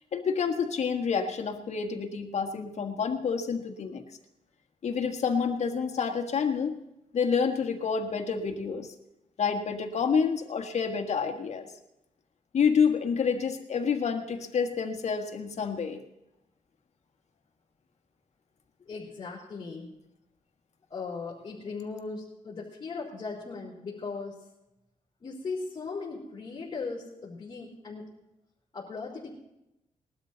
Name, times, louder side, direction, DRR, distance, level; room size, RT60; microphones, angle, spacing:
voice 1, 0.1-4.0 4.8-6.8 7.1-8.9 9.4-11.7 12.5-16.0, left 6 dB, 60° left, 6 dB, 1.5 m, -28 dB
voice 2, 18.8-19.9 20.9-24.5 25.2-28.1 28.7-29.3, left 4 dB, 35° left, -7 dB, 3.9 m, -38 dB
20.0 x 12.5 x 4.0 m, 0.90 s
wide cardioid pair, 125°, 13 cm